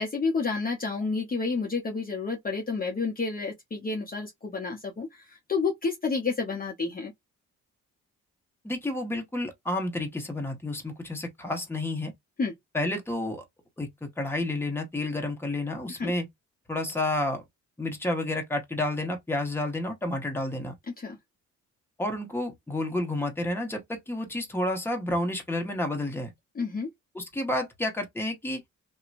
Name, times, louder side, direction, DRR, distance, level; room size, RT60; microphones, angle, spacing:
voice 1, 0.0-7.1 12.4-12.5 15.9-16.1 21.0-21.2 26.5-26.9, left 4 dB, 30° left, 0.8 m, -30 dB
voice 2, 8.6-12.1 12.7-13.4 13.8-16.3 16.7-17.4 17.8-20.7 22.0-26.3 27.1-28.6, left 1 dB, 10° left, 1.0 m, -30 dB
2.7 x 2.2 x 2.5 m
cardioid pair, 90°, 30 cm